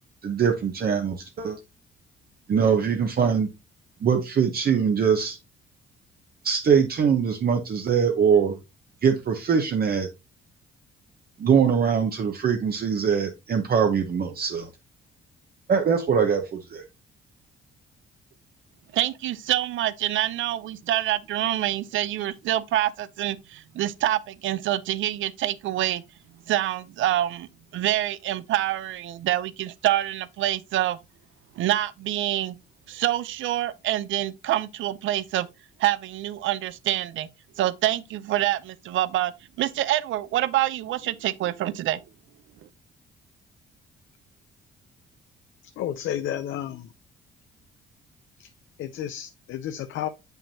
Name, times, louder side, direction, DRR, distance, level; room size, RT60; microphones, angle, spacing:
voice 1, 0.2-1.6 2.5-3.5 4.0-5.4 6.4-8.5 9.0-10.1 11.4-14.7 15.7-16.8, right 7 dB, 50° right, 0.9 m, -22 dB
voice 2, 18.9-26.0 26.5-31.0 31.6-32.6 32.9-35.5 35.8-37.3 37.6-39.3 39.6-42.0, right 13 dB, 75° right, 0.6 m, -26 dB
voice 3, 45.8-46.8 48.4-48.5 48.8-50.1, left 11 dB, 75° left, 0.6 m, -31 dB
7.1 x 5.7 x 2.8 m
cardioid pair, 90°, 20 cm